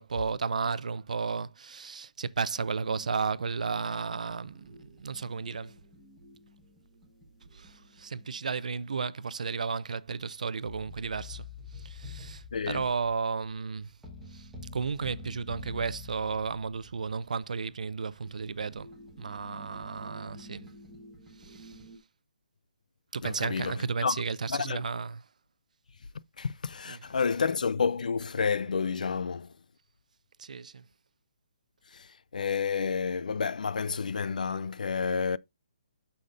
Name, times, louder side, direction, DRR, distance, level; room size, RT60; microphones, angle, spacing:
voice 1, 0.0-5.7 7.5-11.5 11.7-13.9 14.3-18.9 19.2-20.7 21.4-21.8 23.1-25.2 26.8-27.1 30.4-30.8, right 5 dB, 65° right, 0.6 m, -33 dB
sound 1, 2.6-8.8 10.6-22.0, left 2 dB, 5° right, 1.3 m, -49 dB
voice 2, 12.5-12.8 23.2-23.7 24.0-24.2 24.5-24.8 26.4-29.5 31.9-35.4, left 5 dB, 75° left, 0.4 m, -30 dB
12.0 x 5.6 x 2.5 m
hypercardioid pair, 175°, 4 cm